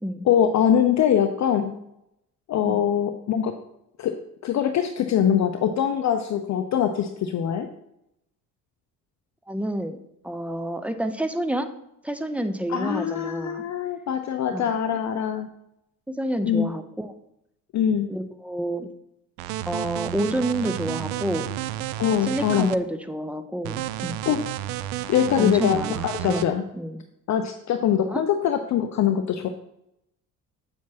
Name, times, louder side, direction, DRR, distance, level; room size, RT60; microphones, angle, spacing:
voice 1, 0.2-1.7 2.5-3.5 4.0-4.2 4.4-7.7 12.7-15.5 16.4-16.7 17.7-18.1 22.0-22.7 24.3-24.4 25.1-25.8 26.0-26.6 27.3-29.5, left 9 dB, 35° left, 7 dB, 0.6 m, -23 dB
voice 2, 9.5-10.0 10.2-11.7 12.0-13.6 14.5-14.8 16.1-17.1 18.1-18.9 19.7-21.5 22.2-24.2 25.4-26.4 26.7-27.0 28.1-28.2, right 1 dB, 5° right, 9 dB, 0.6 m, -29 dB
sound 1, 19.4-22.8 23.6-26.5, right 14 dB, 65° right, 0.5 m, -31 dB
8.6 x 7.3 x 2.9 m, 0.81 s
figure-of-eight pair, 55°, 48 cm